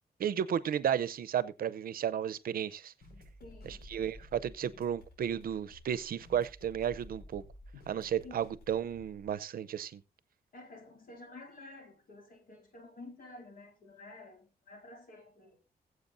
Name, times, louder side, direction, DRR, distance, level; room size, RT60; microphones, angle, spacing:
voice 1, 0.2-2.9 3.6-7.4 7.9-10.0, right 9 dB, 70° right, 0.6 m, -33 dB
sound 1, 3.0-9.3, left 1 dB, 85° left, 5.4 m, -53 dB
voice 2, 3.4-3.9 8.2-8.4 10.5-15.6, left 2 dB, 65° left, 4.2 m, -51 dB
20.5 x 7.9 x 2.6 m
wide cardioid pair, 180°, 16 cm